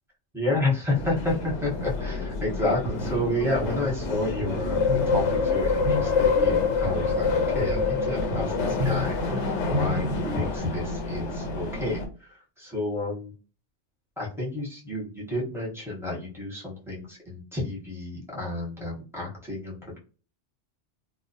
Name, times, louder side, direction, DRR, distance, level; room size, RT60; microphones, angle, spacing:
voice 1, 0.3-13.3 14.2-20.0, left 2 dB, ahead, -6 dB, 0.8 m, -30 dB
sound 1, 0.9-12.1, left 4 dB, 75° left, 0.9 m, -27 dB
Guitar, 2.8-10.6, left 1 dB, 60° right, 0.7 m, -33 dB
2.3 x 2.0 x 2.6 m, 0.35 s
omnidirectional pair, 1.2 m